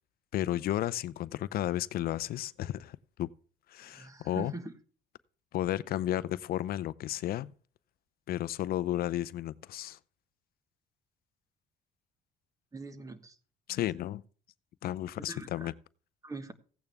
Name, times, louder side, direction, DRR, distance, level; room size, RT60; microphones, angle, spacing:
voice 1, 0.3-3.3 3.7-4.5 5.5-7.5 8.3-10.0 13.7-14.2 14.8-15.7, left 13 dB, 65° left, 0.5 m, -33 dB
voice 2, 3.9-4.7 12.7-13.3 13.8-13.9 15.2-15.7 16.2-16.5, right 2 dB, 20° right, 1.4 m, -43 dB
15.5 x 8.9 x 3.5 m
cardioid pair, 110°, 17 cm